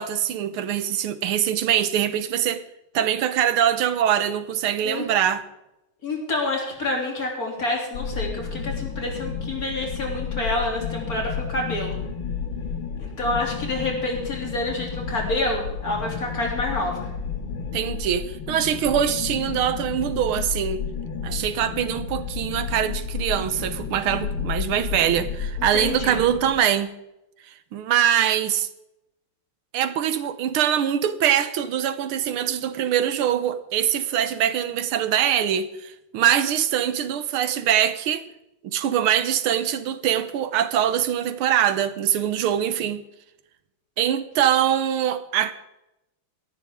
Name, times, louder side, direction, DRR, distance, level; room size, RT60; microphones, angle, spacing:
voice 1, 0.0-2.6 2.9-5.5 17.7-20.8 21.2-26.9 27.7-28.7 29.7-38.2 38.6-43.0 44.0-45.5, right 10 dB, 85° right, 1.8 m, -23 dB
voice 2, 6.0-12.0 13.0-17.1 25.7-26.2, left 2 dB, 45° left, 3.5 m, -28 dB
sound 1, 7.9-26.5, left 6 dB, 85° left, 2.7 m, -31 dB
18.0 x 13.5 x 3.6 m
omnidirectional pair, 2.3 m